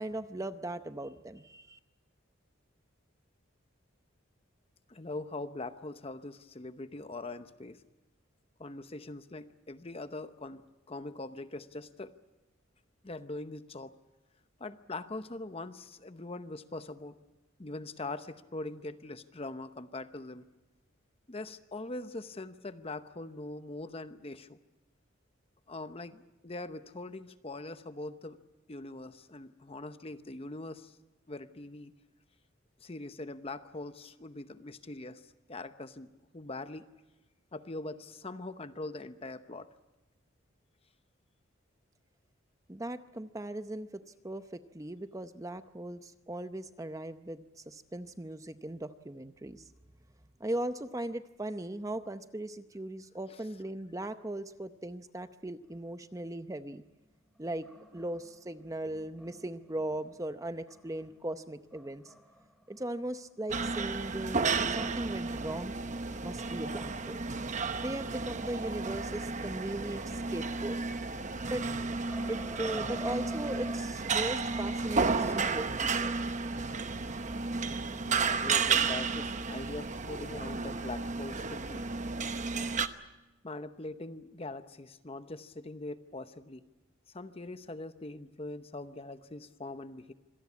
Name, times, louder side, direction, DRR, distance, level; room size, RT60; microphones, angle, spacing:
voice 1, 0.0-1.8 42.7-43.9 44.2-49.7 50.4-56.8 57.4-57.7 57.9-62.1 62.7-65.7 66.2-67.2 67.8-70.8 71.5-71.6 72.3-76.2, right 1 dB, 15° right, 10 dB, 0.7 m, -38 dB
voice 2, 4.9-7.8 8.6-12.1 13.0-14.0 14.6-17.2 17.6-20.4 21.3-24.6 25.7-28.4 28.7-30.9 31.3-31.9 32.8-36.9 37.5-39.7 75.2-75.4 77.8-81.9 83.4-86.6 87.1-90.1, left 2 dB, 30° left, 11 dB, 0.8 m, -42 dB
sound 1, 57.0-60.1 60.6-61.2 61.7-62.8 63.1-63.2 63.7-63.8 66.0-66.1 66.7-67.9 68.3-68.4 70.1-70.5 70.9-71.0 71.4-73.8, equal, ahead, 2.5 m, -48 dB
sound 2, 63.5-82.9, right 4 dB, 35° right, 1.0 m, -32 dB
26.0 x 18.0 x 8.5 m, 1.1 s
head